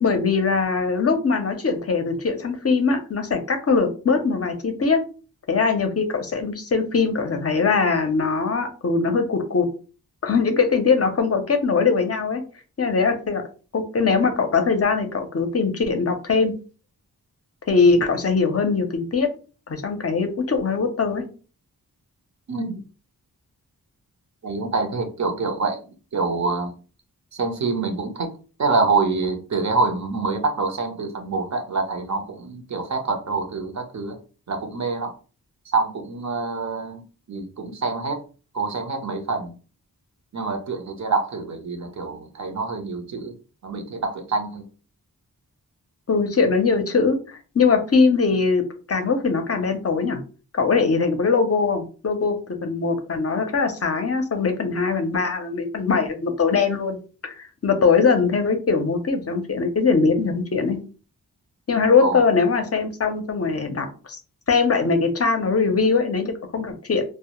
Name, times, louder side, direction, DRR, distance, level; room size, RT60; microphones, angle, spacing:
voice 1, 0.0-5.0 5.5-9.7 10.2-12.4 12.8-13.4 13.7-16.5 17.7-19.3 19.7-21.2 46.1-50.2 50.5-60.8 61.7-64.2 64.5-67.0, left 4 dB, 40° left, 6 dB, 0.6 m, -21 dB
voice 2, 22.5-22.8 24.4-25.8 26.1-26.7 27.3-28.3 28.6-34.2 34.5-35.1 35.7-37.0 37.3-38.2 38.5-39.5 40.3-43.3 43.6-44.6 62.0-62.2, right 3 dB, 50° right, 5 dB, 0.6 m, -26 dB
2.1 x 2.1 x 2.9 m, 0.37 s
cardioid pair, 45°, 37 cm